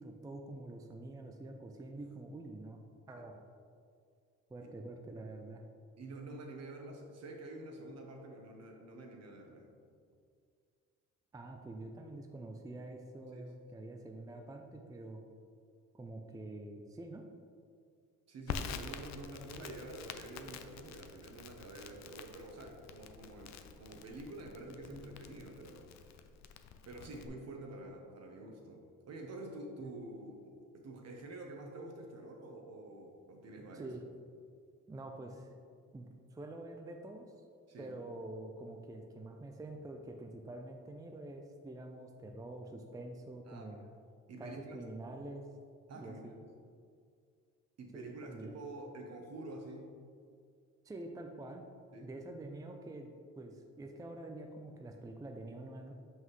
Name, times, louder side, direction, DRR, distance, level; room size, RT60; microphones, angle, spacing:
voice 1, 0.0-2.8 3.1-3.4 4.5-5.6 11.3-15.2 15.9-17.2 29.8-29.9 33.7-34.0 34.9-35.5 35.9-37.3 37.8-43.8 44.4-45.5 45.9-46.3 47.9-48.6 50.8-51.7 52.0-53.1 53.4-55.9, right 2 dB, 10° right, 3 dB, 0.4 m, -46 dB
voice 2, 6.0-9.7 13.3-13.5 18.3-26.2 26.8-34.0 37.7-37.9 43.5-43.7 44.3-44.8 45.9-46.4 47.8-49.9 51.9-52.1, right 2 dB, 60° right, 2 dB, 1.0 m, -48 dB
Crackle, 18.5-27.3, left 7 dB, 65° left, 0.5 m, -47 dB
5.6 x 5.6 x 3.1 m, 2.2 s
cardioid pair, 90°, 30 cm